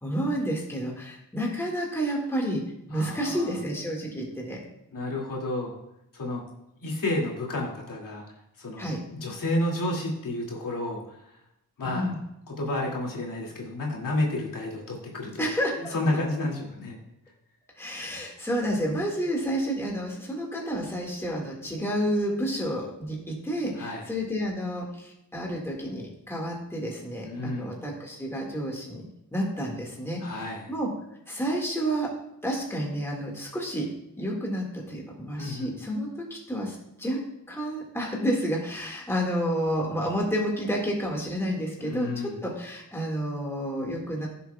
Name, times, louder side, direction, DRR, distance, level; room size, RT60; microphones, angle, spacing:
voice 1, 0.0-2.6 2.9-4.6 8.8-9.0 11.8-12.2 15.4-15.9 17.8-30.9 31.3-32.1 32.4-33.9 34.1-37.2 37.5-42.1 42.4-44.3, equal, 5° left, -2 dB, 1.9 m, -30 dB
voice 2, 2.9-3.6 4.9-5.7 6.1-6.4 6.8-8.2 8.6-11.3 11.8-12.1 12.5-15.4 15.8-17.0 23.7-24.1 27.3-27.8 30.2-30.7 35.4-35.7 41.8-42.4, left 1 dB, 75° left, -2 dB, 2.5 m, -31 dB
16.0 x 6.9 x 2.3 m, 0.82 s
wide cardioid pair, 140°, 33 cm